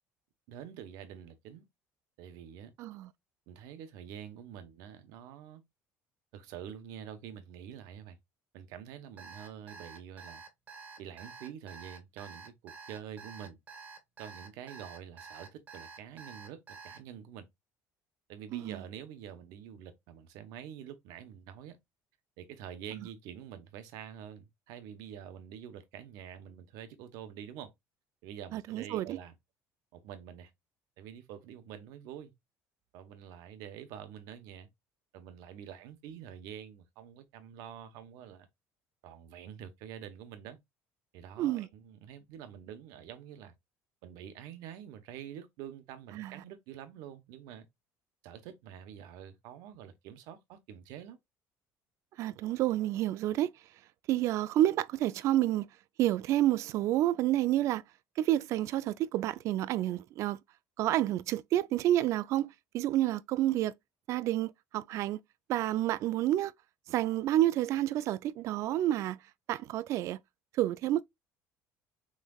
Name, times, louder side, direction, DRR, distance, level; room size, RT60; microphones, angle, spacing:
voice 1, 0.5-1.6 2.2-2.7 3.5-5.6 6.3-8.2 8.5-10.4 11.0-13.6 14.2-17.5 18.3-21.8 22.4-27.7 28.2-29.3 29.9-30.5 31.0-32.3 32.9-34.7 35.1-38.5 39.0-40.6 41.1-43.5 44.0-47.7 48.2-51.2, right 9 dB, 80° right, 1.0 m, -47 dB
voice 2, 2.8-3.1 18.5-18.8 28.5-29.2 41.4-41.7 46.1-46.3 52.2-53.5 54.1-55.7 56.0-57.8 58.2-60.4 60.8-63.7 64.1-65.2 65.5-66.5 66.9-69.2 69.5-70.2 70.6-71.0, right 13 dB, 55° right, 0.4 m, -29 dB
Alarm, 9.2-17.0, right 5 dB, 25° right, 1.2 m, -49 dB
6.3 x 3.2 x 2.3 m
cardioid pair, 155°, 6 cm